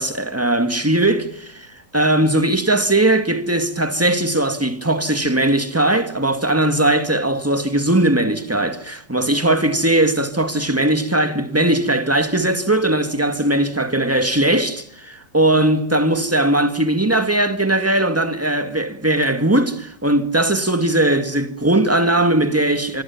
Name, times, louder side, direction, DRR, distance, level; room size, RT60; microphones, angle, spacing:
voice 1, 0.0-23.0, right 1 dB, 10° right, 1.8 m, -19 dB
25.5 x 24.5 x 7.1 m
omnidirectional pair, 1.8 m